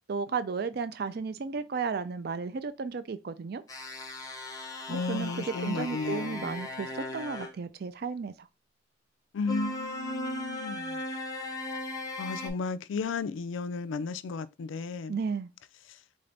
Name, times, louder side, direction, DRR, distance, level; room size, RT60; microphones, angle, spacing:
voice 1, 0.0-3.6 4.9-8.5 15.1-15.5, right 5 dB, 50° right, 0.4 m, -34 dB
sound 1, 3.7-7.5 9.4-12.5, left 1 dB, 20° left, 0.5 m, -37 dB
voice 2, 4.9-6.6 9.3-11.0 12.2-15.2, left 4 dB, 75° left, 0.4 m, -34 dB
3.8 x 2.6 x 3.3 m
head